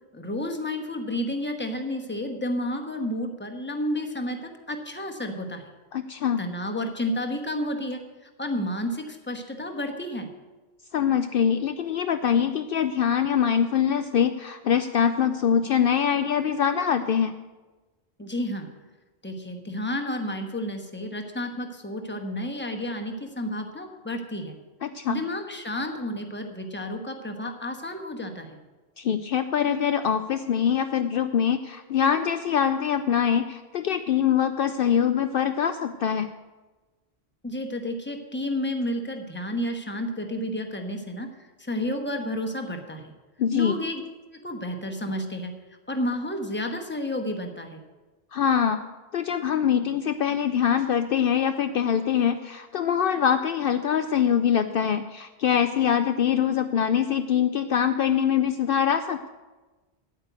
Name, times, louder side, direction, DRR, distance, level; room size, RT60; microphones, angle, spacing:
voice 1, 0.1-5.7 6.4-10.3 18.2-18.7 19.2-24.5 25.1-28.6 37.4-43.1 43.5-44.0 44.3-45.5 45.9-47.8, left 1 dB, 10° left, 4 dB, 1.1 m, -31 dB
voice 2, 5.9-6.4 10.9-17.3 24.8-25.2 29.0-36.3 43.4-43.8 48.3-48.8 49.1-59.3, left 8 dB, 65° left, 9 dB, 0.7 m, -24 dB
9.6 x 9.2 x 8.1 m, 1.2 s
omnidirectional pair, 1.1 m